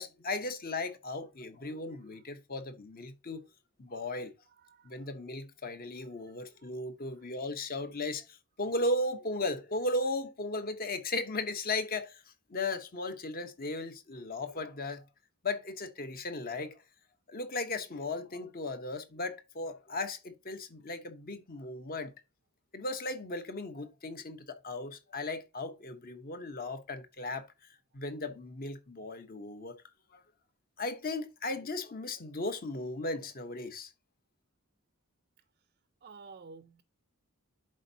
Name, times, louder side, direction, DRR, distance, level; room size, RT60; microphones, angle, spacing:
voice 1, 0.0-3.4 3.8-4.3 4.8-12.2 12.5-15.0 15.4-16.8 17.3-22.1 22.7-27.5 27.9-29.8 30.8-33.9, left 2 dB, 40° left, 1.0 m, -36 dB
voice 2, 4.6-5.1 6.2-6.7 36.0-36.8, right 4 dB, 40° right, 0.5 m, -53 dB
11.0 x 4.5 x 2.8 m
head